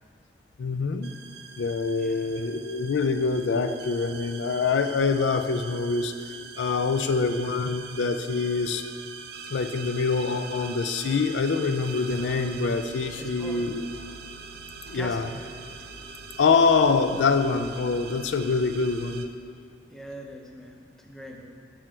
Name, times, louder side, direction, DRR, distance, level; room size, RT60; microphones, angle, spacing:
voice 1, 0.6-1.1 1.6-6.1 6.6-8.8 9.5-13.9 14.9-15.3 16.4-19.3, left 4 dB, 85° left, 9 dB, 0.4 m, -25 dB
sound 1, 1.0-19.3, right 5 dB, 60° right, 0.5 m, -42 dB
voice 2, 2.0-2.3 7.0-7.2 13.2-13.7 14.9-15.5 19.9-21.5, equal, 5° left, 1 dB, 0.6 m, -43 dB
7.6 x 6.2 x 4.4 m, 2.1 s
head